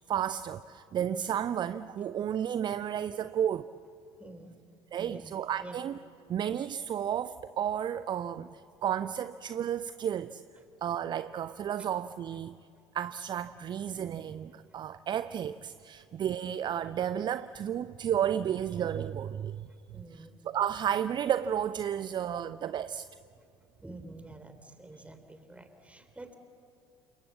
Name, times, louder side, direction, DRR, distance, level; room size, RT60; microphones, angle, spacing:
voice 1, 0.1-3.7 4.9-6.0 6.3-10.4 10.8-12.6 12.9-19.7 20.1-23.1, right 9 dB, 35° right, 15 dB, 0.6 m, -32 dB
voice 2, 4.2-4.6 5.0-5.3 5.6-5.8 19.9-20.3 23.8-26.3, right 2 dB, 10° right, 8 dB, 3.5 m, -48 dB
28.5 x 28.0 x 7.5 m, 2.4 s
figure-of-eight pair, 60°, 14 cm